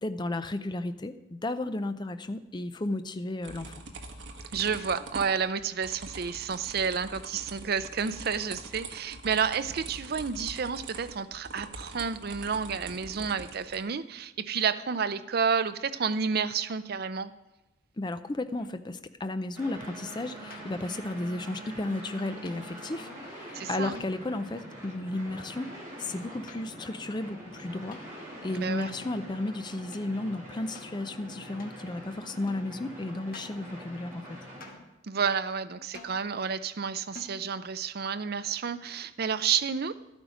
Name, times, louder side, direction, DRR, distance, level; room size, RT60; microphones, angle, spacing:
voice 1, 0.0-3.8 18.0-25.7 26.0-34.4, left 2 dB, 25° left, 10 dB, 0.5 m, -34 dB
sound 1, 3.4-13.8, right 3 dB, 70° right, 1.3 m, -44 dB
voice 2, 4.5-17.3 23.5-24.0 28.5-28.9 35.0-39.9, right 6 dB, 55° right, 12 dB, 0.5 m, -30 dB
sound 2, 18.6-19.0 20.5-20.9 22.5-22.8 23.9-24.4 26.2-26.9 27.9-28.1 29.0-29.2 29.9-30.1 30.7-31.0 31.6-31.8 32.5-32.7 33.3-33.7 34.6-35.0 35.9-36.3 37.1-37.4, left 2 dB, 50° left, 1.4 m, -50 dB
sound 3, 19.5-34.7, right 1 dB, 15° right, 4.6 m, -44 dB
12.5 x 9.0 x 5.0 m, 0.98 s
head